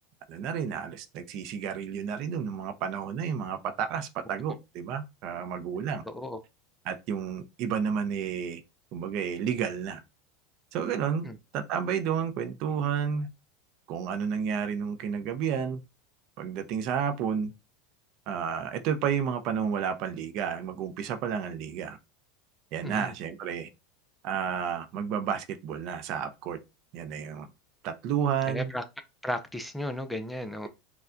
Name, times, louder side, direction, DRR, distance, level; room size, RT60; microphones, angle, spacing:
voice 1, 0.3-6.0 6.9-8.6 8.9-10.0 10.7-11.2 11.5-13.3 13.9-15.8 16.4-17.5 18.3-22.0 22.7-23.7 24.2-26.6 26.9-27.5 27.8-28.7, right 7 dB, 55° right, 0.6 m, -31 dB
voice 2, 6.1-6.4 11.2-11.3 22.8-23.1 28.5-28.8 29.2-30.7, left 1 dB, 5° left, 0.5 m, -34 dB
4.3 x 2.2 x 2.5 m
supercardioid pair, 110°, 0 cm